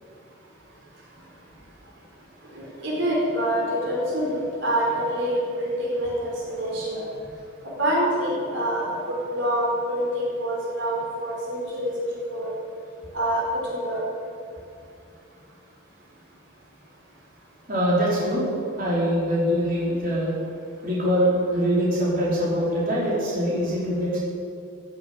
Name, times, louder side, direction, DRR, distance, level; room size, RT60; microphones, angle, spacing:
voice 1, 2.5-7.0 7.8-12.5 13.1-14.0, equal, 60° right, -4 dB, 5.0 m, -26 dB
voice 2, 17.7-18.4 18.8-20.3 20.8-24.2, equal, 45° right, -7 dB, 5.0 m, -23 dB
16.5 x 9.7 x 9.0 m, 2.5 s
head